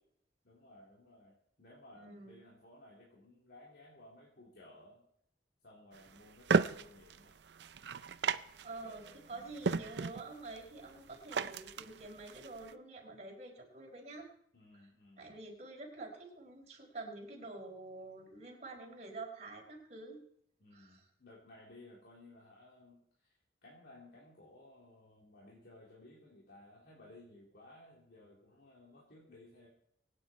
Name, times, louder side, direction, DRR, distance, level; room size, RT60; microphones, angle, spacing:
voice 1, 0.4-5.1 5.6-7.3 8.8-9.6 14.5-15.4 20.6-29.7, left 1 dB, 65° left, -5 dB, 3.7 m, -58 dB
voice 2, 2.0-2.4 8.6-14.3 15.2-20.2 20.7-21.0, right 2 dB, 40° right, -1 dB, 4.8 m, -48 dB
sound 1, 5.9-12.7, right 5 dB, 75° right, 0.6 m, -36 dB
24.5 x 9.6 x 4.5 m, 0.69 s
head